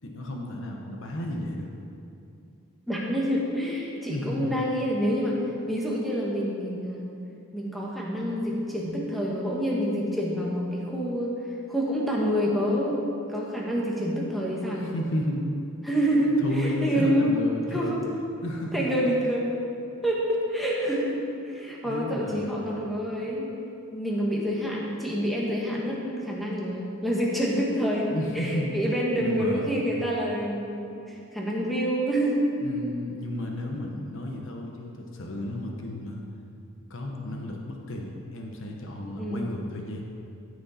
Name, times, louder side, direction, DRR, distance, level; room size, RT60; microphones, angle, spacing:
voice 1, 0.0-1.7 4.1-4.5 14.7-15.5 16.4-18.0 18.4-19.0 21.8-22.7 28.1-28.7 29.2-29.8 32.6-36.2 36.9-40.0, left 1 dB, 60° left, 1 dB, 1.1 m, -32 dB
voice 2, 2.9-7.1 7.5-13.0 13.3-14.9 15.8-17.4 17.7-18.0 18.7-19.5 20.0-23.5 23.9-32.4 39.2-39.5, equal, ahead, -4 dB, 1.5 m, -27 dB
15.0 x 6.4 x 4.3 m, 2.6 s
head